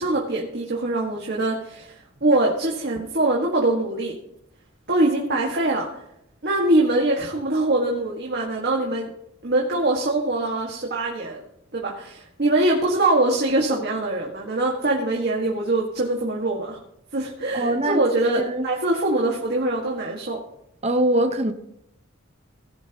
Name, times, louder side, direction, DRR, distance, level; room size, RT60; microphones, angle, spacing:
voice 1, 0.0-1.9 2.2-4.1 4.9-5.9 6.4-9.1 9.4-11.4 11.7-16.8 17.1-20.4, right 2 dB, 55° right, 1.8 m, -23 dB
voice 2, 17.5-18.0 18.4-18.7 20.8-21.5, right 1 dB, 30° right, 1.0 m, -22 dB
17.5 x 11.5 x 3.0 m
head